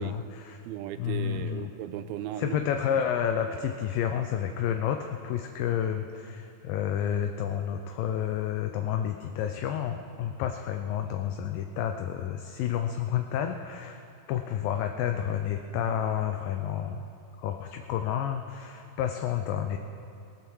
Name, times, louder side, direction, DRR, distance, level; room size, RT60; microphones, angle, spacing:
voice 1, 0.0-0.6 1.0-1.7 2.4-17.1 17.4-19.8, left 9 dB, 80° left, 6 dB, 2.1 m, -30 dB
voice 2, 0.6-2.6, right 11 dB, 90° right, 9 dB, 2.5 m, -36 dB
19.0 x 10.0 x 6.2 m, 2.6 s
omnidirectional pair, 4.3 m